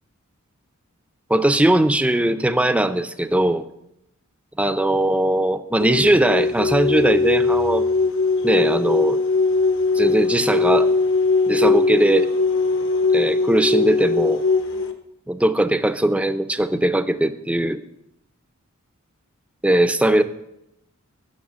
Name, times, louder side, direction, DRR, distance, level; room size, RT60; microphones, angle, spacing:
voice 1, 1.3-3.7 4.6-7.9 8.4-9.2 9.9-10.9 11.5-12.3 13.1-14.4 15.3-17.8 19.6-20.2, right 1 dB, 5° right, 10 dB, 0.4 m, -19 dB
sound 1, 5.8-14.9, left 3 dB, 65° left, 0.9 m, -20 dB
9.6 x 6.7 x 6.2 m, 0.82 s
head